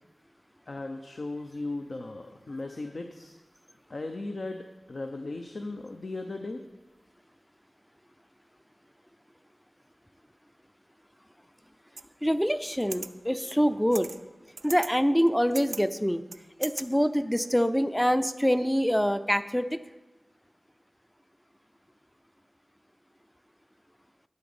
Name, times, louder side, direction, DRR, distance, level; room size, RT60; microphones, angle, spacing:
voice 1, 0.7-3.3 3.9-6.6, left 2 dB, 60° left, 5 dB, 0.7 m, -37 dB
sound 1, 12.0-12.1 12.7-13.1 13.9-14.2 14.6-14.9 15.3-15.8 16.3-16.8, right 3 dB, 70° right, 0.4 m, -39 dB
voice 2, 12.2-14.1 14.6-16.2 16.6-19.8, equal, 5° left, 12 dB, 0.5 m, -25 dB
12.5 x 5.1 x 7.0 m, 1.1 s
wide cardioid pair, 75°, 0 cm